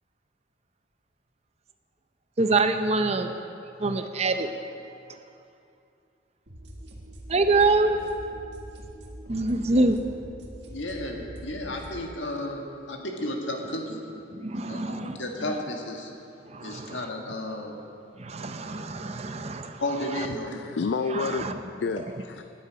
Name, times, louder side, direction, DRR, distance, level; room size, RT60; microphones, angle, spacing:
voice 1, 2.4-3.3 3.8-4.5 7.3-8.0 9.3-10.0 14.3-15.2 16.5-17.0 18.2-19.8 21.1-21.6 22.0-22.1, right 3 dB, 35° right, 8 dB, 0.7 m, -25 dB
sound 1, 6.5-11.9, right 1 dB, 65° right, 1.8 m, -43 dB
voice 2, 10.7-14.0 14.7-16.1 16.6-17.8 19.8-20.7, left 1 dB, 85° left, 1 dB, 1.7 m, -33 dB
voice 3, 20.4-21.5 21.7-22.4, left 4 dB, 70° left, 9 dB, 0.4 m, -30 dB
20.0 x 8.4 x 5.2 m, 2.6 s
head